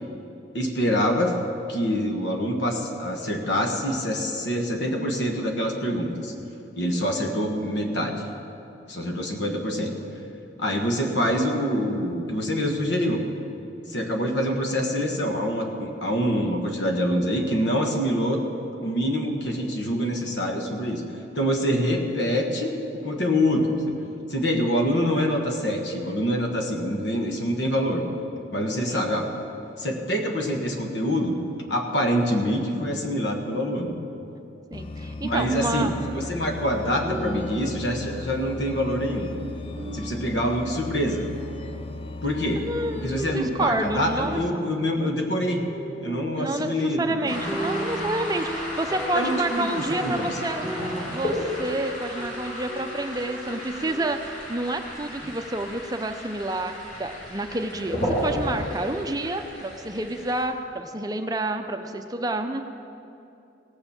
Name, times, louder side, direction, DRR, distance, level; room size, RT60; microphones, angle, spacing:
voice 1, 0.5-1.3 1.7-6.3 6.8-8.2 8.9-9.9 10.6-13.2 13.9-18.4 18.8-21.0 21.3-24.0 24.3-28.0 28.5-29.3 29.8-31.3 31.7-33.9 35.2-39.3 39.9-41.3 42.2-42.6 43.0-45.6 46.0-47.4 49.1-50.3, equal, 75° left, 3 dB, 1.4 m, -25 dB
sound 1, 34.7-44.5, left 2 dB, 30° left, 0.4 m, -37 dB
voice 2, 34.7-35.9 42.5-44.4 46.4-50.6 51.1-62.6, right 2 dB, 20° right, 6 dB, 0.5 m, -29 dB
sound 2, 36.0-42.5 42.8-43.6 44.2-54.8 55.2-55.3, right 1 dB, 5° left, 3.4 m, -38 dB
sound 3, 47.2-60.4, equal, 45° left, 3.7 m, -33 dB
17.0 x 6.7 x 7.2 m, 2.7 s
head